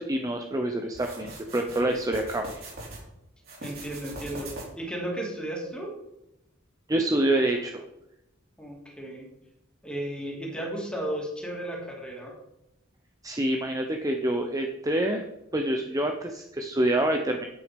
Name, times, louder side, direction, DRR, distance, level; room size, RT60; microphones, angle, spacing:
voice 1, 0.0-2.6 6.9-7.8 13.2-15.2 15.5-17.5, right 1 dB, 20° right, 4 dB, 0.7 m, -27 dB
sound 1, 0.9-3.0 3.4-4.9, right 1 dB, 50° right, 3.9 m, -41 dB
voice 2, 3.6-5.9 8.6-9.3 9.8-12.3, right 1 dB, 5° left, -2 dB, 2.9 m, -34 dB
9.8 x 8.3 x 5.2 m, 0.89 s
head